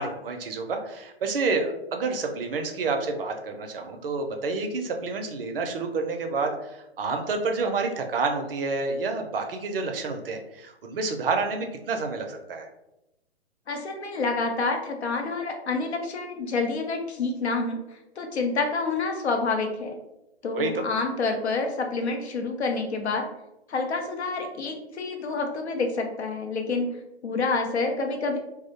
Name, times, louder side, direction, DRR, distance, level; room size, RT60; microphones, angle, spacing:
voice 1, 0.0-12.7 20.5-20.8, right 4 dB, 60° right, 4 dB, 0.5 m, -29 dB
voice 2, 13.7-20.0 20.4-23.3 23.7-28.4, left 3 dB, 75° left, 4 dB, 0.6 m, -28 dB
2.3 x 2.0 x 2.7 m, 0.90 s
figure-of-eight pair, 125°, 33 cm